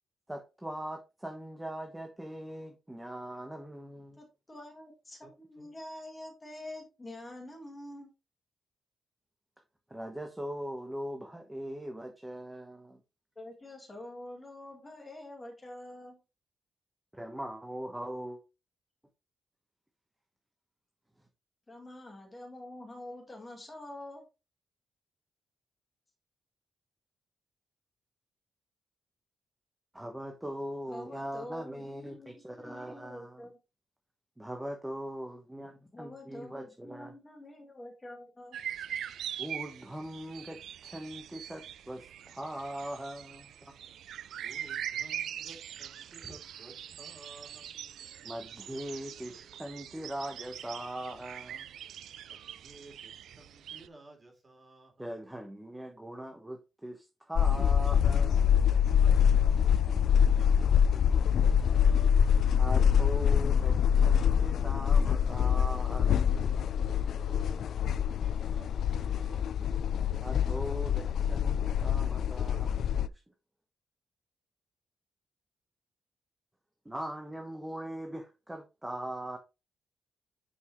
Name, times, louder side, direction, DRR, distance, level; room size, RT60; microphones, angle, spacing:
voice 1, 0.3-4.2 9.9-13.0 17.1-18.4 29.9-33.5 34.4-37.1 39.4-43.7 48.2-51.7 55.0-58.5 62.6-66.4 70.2-73.0 76.8-79.4, right 1 dB, 5° right, 1.1 m, -41 dB
voice 2, 4.2-8.1 13.4-16.2 21.7-24.3 30.9-33.6 35.9-39.2, left 1 dB, 20° left, 2.5 m, -46 dB
voice 3, 5.2-5.7 43.6-44.0 44.4-47.8 49.4-49.6 52.2-54.9 59.7-62.4 66.9-69.8, right 2 dB, 25° right, 3.2 m, -55 dB
sound 1, 38.5-53.9, right 10 dB, 90° right, 0.5 m, -42 dB
sound 2, 57.4-73.1, left 8 dB, 65° left, 0.3 m, -25 dB
9.7 x 5.5 x 3.1 m
wide cardioid pair, 145°, 0 cm